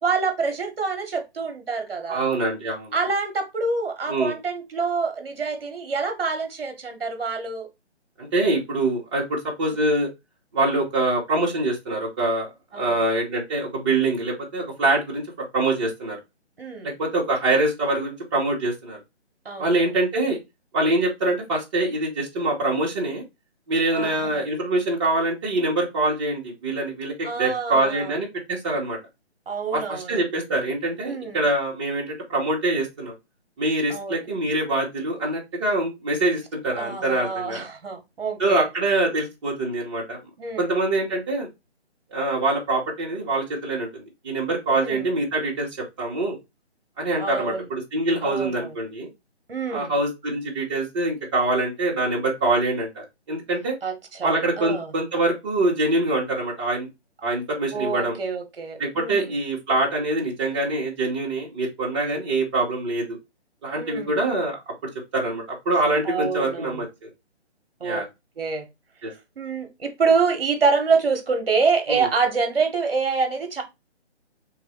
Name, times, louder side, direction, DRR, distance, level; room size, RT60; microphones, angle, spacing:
voice 1, 0.0-2.2 2.9-7.7 9.7-9.8 12.7-13.1 16.6-16.9 19.4-19.8 23.9-24.4 27.2-28.1 29.5-30.2 31.0-31.4 33.9-34.2 36.8-38.7 40.4-40.7 44.7-45.1 47.2-47.7 48.2-48.7 49.5-49.9 53.8-54.9 57.7-59.3 63.7-64.1 66.0-66.8 67.8-68.0 68.4-68.7 69.4-73.6, right 4 dB, 55° right, 1.4 m, -26 dB
voice 2, 2.1-2.9 4.1-4.3 8.2-10.1 10.5-16.2 16.8-19.0 19.6-20.4 20.7-23.2 23.7-29.0 29.7-33.1 33.6-37.7 38.4-40.2 40.6-41.5 42.1-46.4 47.0-49.1 49.7-53.8 54.2-56.9 57.2-58.2 58.8-63.2 63.6-64.7 65.1-67.1 67.8-68.0 69.0-69.1 71.9-72.1, right 2 dB, 25° right, 1.3 m, -24 dB
3.9 x 3.0 x 4.3 m
figure-of-eight pair, 150°, 34 cm